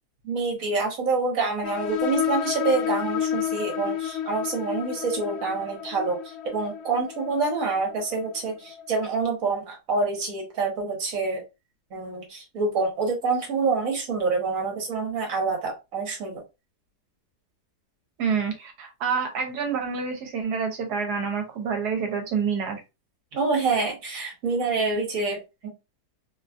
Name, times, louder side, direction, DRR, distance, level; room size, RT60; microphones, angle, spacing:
voice 1, 0.2-11.4 11.9-16.4 23.3-25.7, right 4 dB, 60° right, 0 dB, 1.4 m, -27 dB
sound 1, 1.6-8.9, left 10 dB, 85° left, 0.5 m, -31 dB
voice 2, 18.2-22.8, right 6 dB, 75° right, 4 dB, 1.3 m, -27 dB
3.0 x 2.3 x 2.4 m, 0.25 s
omnidirectional pair, 1.7 m